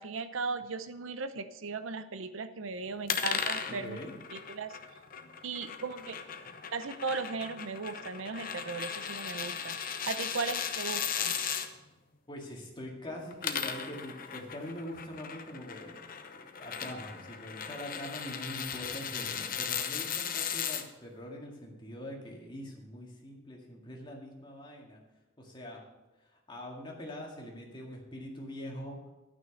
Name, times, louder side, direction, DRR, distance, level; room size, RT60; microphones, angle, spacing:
voice 1, 0.0-4.0 4.3-4.7 5.4-6.2 6.7-11.3, right 4 dB, 80° right, 12 dB, 0.7 m, -37 dB
sound 1, 3.1-11.7 13.2-20.8, left 8 dB, 45° left, 0.8 m, -37 dB
voice 2, 3.7-4.1 12.3-25.0 25.4-25.8 26.3-29.0, left 1 dB, 25° left, -1 dB, 2.0 m, -43 dB
11.5 x 6.2 x 6.5 m, 1.1 s
head